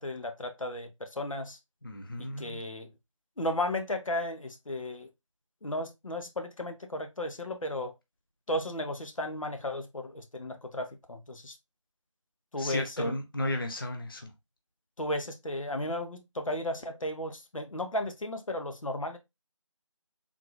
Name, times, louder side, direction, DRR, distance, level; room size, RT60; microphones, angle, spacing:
voice 1, 0.0-1.6 2.2-2.9 3.4-5.1 5.6-7.9 8.5-11.6 12.5-13.1 15.0-19.2, left 1 dB, 80° left, 0.8 m, -34 dB
voice 2, 1.8-2.6 12.6-14.3, left 1 dB, 45° left, 0.5 m, -34 dB
3.7 x 2.5 x 3.1 m
figure-of-eight pair, 175°, 17 cm